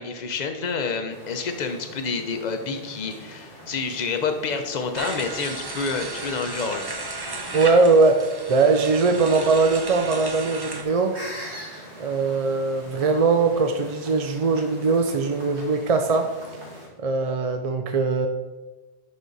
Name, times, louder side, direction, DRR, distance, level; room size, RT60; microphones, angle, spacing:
voice 1, 0.0-6.9, left 4 dB, 45° left, 6 dB, 0.9 m, -28 dB
sound 1, 1.1-16.9, equal, 80° right, 2.4 m, -43 dB
sound 2, 4.9-10.8, right 2 dB, 25° right, 0.8 m, -34 dB
voice 2, 7.5-11.2 12.0-16.3 17.0-18.3, right 4 dB, 50° right, 5 dB, 0.4 m, -21 dB
11.0 x 4.2 x 4.0 m, 1.2 s
omnidirectional pair, 1.1 m